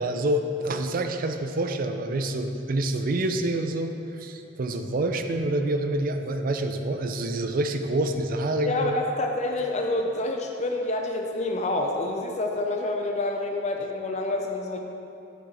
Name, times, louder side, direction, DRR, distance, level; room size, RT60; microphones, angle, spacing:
voice 1, 0.0-9.0, right 1 dB, 50° right, 6 dB, 0.4 m, -27 dB
voice 2, 8.6-14.8, left 2 dB, 40° left, 2 dB, 0.5 m, -28 dB
8.0 x 6.1 x 4.3 m, 2.7 s
head